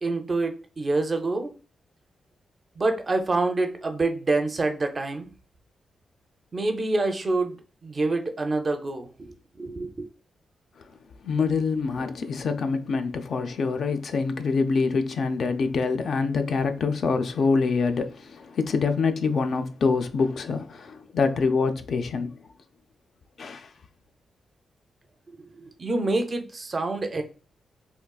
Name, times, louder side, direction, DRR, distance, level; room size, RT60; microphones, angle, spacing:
voice 1, 0.0-1.5 2.8-5.3 6.5-10.1 25.3-27.2, right 2 dB, 30° right, 0.4 m, -27 dB
voice 2, 11.2-22.3 23.4-23.7, left 4 dB, 55° left, 0.4 m, -25 dB
3.6 x 2.3 x 2.3 m
wide cardioid pair, 130°, 0 cm